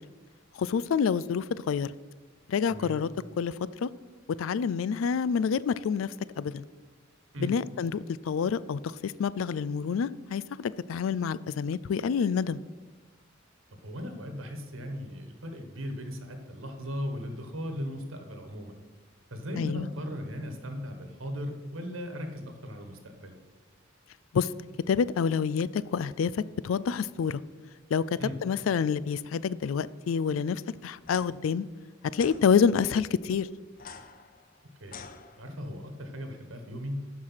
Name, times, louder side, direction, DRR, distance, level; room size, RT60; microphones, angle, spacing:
voice 1, 0.6-1.9 2.5-3.1 3.4-3.6 3.8-3.9 4.4-6.6 7.4-12.6 19.6-19.9 24.3-24.5 24.9-27.4 27.9-31.7 32.1-33.5, left 6 dB, 85° left, 18 dB, 0.3 m, -28 dB
voice 2, 2.7-3.0 7.3-7.5 13.8-18.8 19.3-23.4 28.2-28.4 34.8-35.1 35.4-37.0, equal, 90° right, 6 dB, 1.4 m, -37 dB
sound 1, 31.0-31.3 32.1-32.4 33.7-35.8, left 6 dB, 45° left, 0.6 m, -46 dB
12.0 x 4.8 x 5.7 m, 1.3 s
head